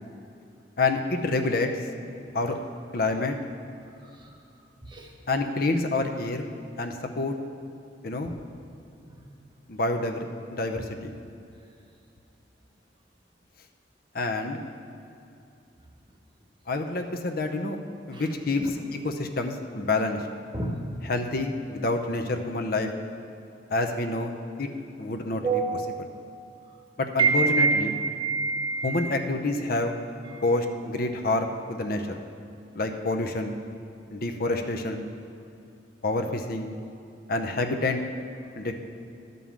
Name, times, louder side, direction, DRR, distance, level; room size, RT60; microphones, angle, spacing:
voice 1, 0.8-1.7 2.3-2.6 2.9-3.3 5.3-6.5 6.8-7.3 8.0-8.3 9.7-10.2 10.5-11.1 14.1-14.6 16.7-17.8 18.1-20.3 21.0-22.9 23.7-24.7 25.0-26.1 27.0-28.0 28.8-30.0 30.4-32.2 32.7-33.5 34.1-35.0 36.0-36.7 37.3-38.0 38.6-38.7, left 2 dB, 55° left, 5 dB, 0.7 m, -28 dB
voice 2, 20.5-20.9 25.4-26.1 27.2-29.1 30.3-30.4, right 4 dB, 25° right, 1 dB, 1.1 m, -26 dB
11.0 x 5.4 x 7.4 m, 2.7 s
head